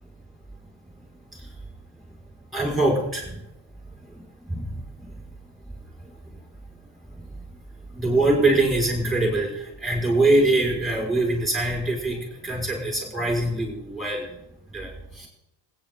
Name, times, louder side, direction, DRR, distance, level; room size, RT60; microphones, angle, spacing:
voice 1, 2.5-3.3 4.5-4.6 8.0-9.5 9.8-14.3 14.7-14.9 15.2-15.3, right 2 dB, ahead, -2 dB, 5.3 m, -23 dB
27.5 x 9.4 x 3.8 m, 0.83 s
cardioid pair, 115°, 44 cm